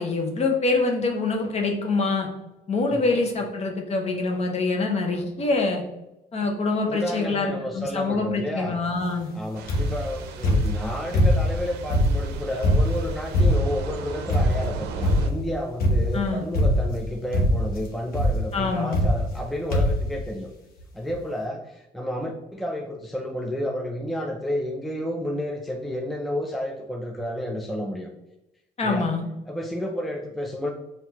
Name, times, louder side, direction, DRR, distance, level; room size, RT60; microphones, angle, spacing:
voice 1, 0.0-2.3 2.7-5.8 6.3-9.3 16.1-16.4 18.5-19.0 28.8-29.2, left 3 dB, 40° left, 2 dB, 1.0 m, -25 dB
voice 2, 6.9-8.8 9.3-20.5 20.9-28.1 28.8-29.1 29.5-30.7, equal, ahead, 1 dB, 0.4 m, -31 dB
sound 1, 9.5-15.3, right 5 dB, 80° right, 0.5 m, -37 dB
sound 2, 9.7-10.1 10.4-11.6 11.9-13.8 14.3-14.7 15.0-15.4 15.8-16.2 16.5-17.0 17.3-17.8 18.1-18.4 18.9-19.4 19.7-20.1 20.8-20.9 21.1-21.2, left 1 dB, 65° left, 1.0 m, -21 dB
5.5 x 2.8 x 2.9 m, 0.93 s
cardioid pair, 110°, 17 cm